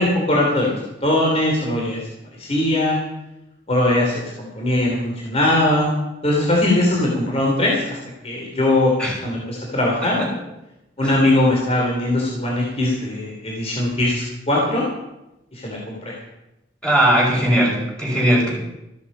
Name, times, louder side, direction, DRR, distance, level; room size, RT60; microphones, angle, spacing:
voice 1, 0.0-2.0 2.4-3.0 3.7-5.9 6.2-8.0 8.2-9.0 9.2-10.2 11.0-14.9 15.5-16.1, left 1 dB, 35° left, -2 dB, 3.2 m, -20 dB
voice 2, 16.8-18.5, right 1 dB, 5° left, -3 dB, 5.9 m, -18 dB
14.5 x 13.0 x 5.5 m, 0.91 s
head